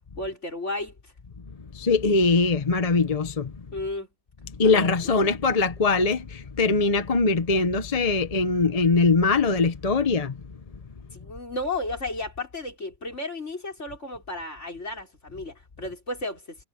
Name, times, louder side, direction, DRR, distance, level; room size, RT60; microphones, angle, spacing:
voice 1, 0.2-1.0 3.7-4.1 4.6-5.1 11.1-16.6, left 2 dB, 55° left, 5.6 m, -33 dB
voice 2, 1.7-3.5 4.6-10.4, left 4 dB, 30° left, 0.9 m, -22 dB
omnidirectional pair, 1.5 m